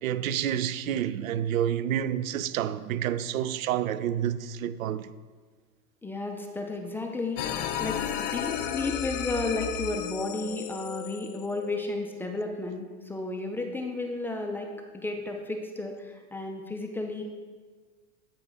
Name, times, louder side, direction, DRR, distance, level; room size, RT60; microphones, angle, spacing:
voice 1, 0.0-5.1, right 10 dB, 85° right, 0.5 m, -29 dB
voice 2, 6.0-7.4 7.8-17.2, left 2 dB, 5° left, 0.5 m, -33 dB
sound 1, 7.4-12.3, left 9 dB, 45° left, 0.6 m, -33 dB
8.5 x 4.8 x 3.6 m
hypercardioid pair, 110°, 39 cm